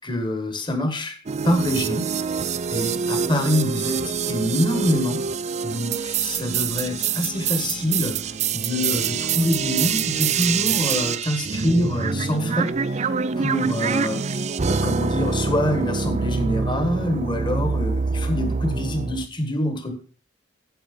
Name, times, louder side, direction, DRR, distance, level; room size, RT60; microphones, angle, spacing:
voice 1, 0.0-1.2 1.4-2.0 2.7-5.2 5.6-20.0, left 1 dB, 25° left, 6 dB, 1.7 m, -25 dB
sound 1, 1.3-19.3, right 5 dB, 40° right, 0.5 m, -25 dB
15.5 x 5.9 x 5.4 m, 0.40 s
head